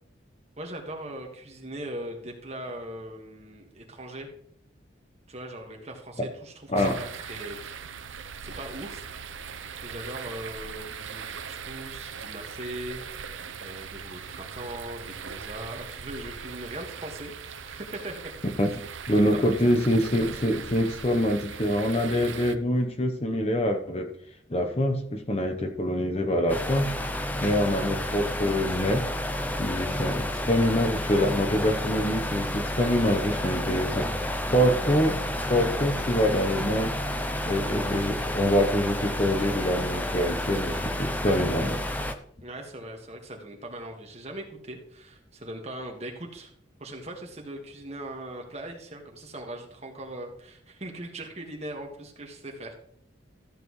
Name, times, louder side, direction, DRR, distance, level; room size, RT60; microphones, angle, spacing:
voice 1, 0.6-4.3 5.3-7.7 8.1-9.1 9.8-13.0 13.6-18.3 18.7-18.8 19.1-20.1 42.4-46.5 46.8-52.7, right 1 dB, 35° right, 2 dB, 1.7 m, -40 dB
sound 1, 6.7-22.5, right 6 dB, 85° right, 0.8 m, -40 dB
voice 2, 19.1-24.1 24.5-26.9 27.4-29.0 29.6-34.1 34.5-35.2 35.5-36.9 37.5-41.8, equal, 30° left, 6 dB, 0.9 m, -25 dB
sound 2, 26.5-42.1, left 1 dB, 10° left, 0.6 m, -30 dB
13.5 x 7.9 x 3.2 m, 0.65 s
head